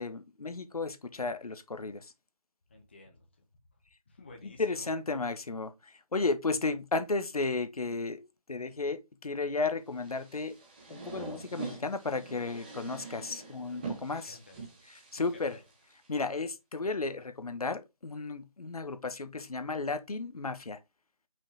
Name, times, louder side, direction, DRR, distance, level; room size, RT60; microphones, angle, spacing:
voice 1, 0.0-2.1 4.4-10.6 10.9-14.4 14.9-15.5 16.1-20.8, left 3 dB, 80° left, 1.2 m, -34 dB
voice 2, 2.7-3.3 4.1-4.9 14.1-14.8 15.2-15.6, left 3 dB, 20° left, 0.8 m, -52 dB
sound 1, 9.9-16.1, right 4 dB, 15° right, 1.3 m, -44 dB
5.6 x 5.0 x 3.3 m
figure-of-eight pair, 170°, 19 cm